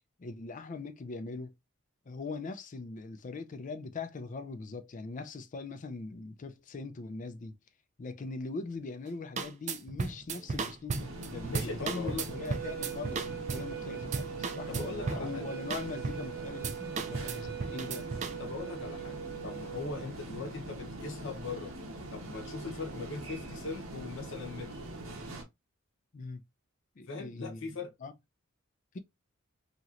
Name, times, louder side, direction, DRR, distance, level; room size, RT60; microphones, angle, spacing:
voice 1, 0.2-1.5 2.1-7.6 8.0-18.1 19.9-20.1 26.1-26.4 27.0-27.7 28.0-28.1 28.9-29.0, left 3 dB, 40° left, 0.4 m, -41 dB
sound 1, 9.1-9.2 9.4-13.7 14.0-15.3 15.7-16.3 16.6-18.4, right 4 dB, 35° right, 0.3 m, -35 dB
sound 2, 11.0-25.4, right 1 dB, 85° right, 0.9 m, -43 dB
voice 2, 11.5-12.3 14.7-15.4 18.4-21.7 22.1-24.9 27.1-27.9, left 4 dB, 65° left, 0.8 m, -40 dB
sound 3, 12.3-20.1, right 10 dB, 50° right, 0.9 m, -42 dB
2.9 x 2.9 x 2.5 m
head